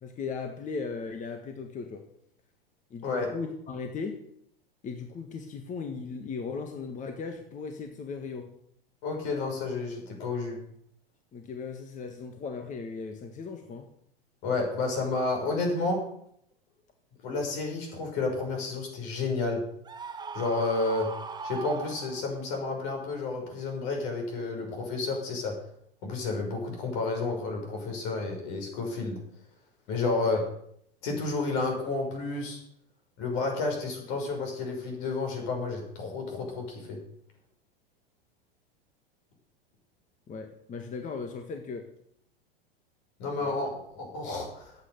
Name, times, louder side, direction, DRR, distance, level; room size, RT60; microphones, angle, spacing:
voice 1, 0.0-2.0 2.9-4.2 4.8-8.5 11.3-13.8 30.3-30.4 40.3-41.9 43.3-43.6, left 5 dB, 25° left, 5 dB, 1.7 m, -37 dB
voice 2, 9.0-10.6 14.4-16.0 17.2-19.6 20.3-21.1 21.4-25.5 26.0-29.2 29.9-30.4 31.0-32.6 33.2-37.0 43.2-44.7, left 3 dB, 55° left, 2 dB, 6.2 m, -31 dB
Screaming, 19.9-22.5, right 5 dB, 15° right, 1.2 m, -39 dB
14.0 x 8.8 x 6.9 m, 0.69 s
hypercardioid pair, 105°, 29 cm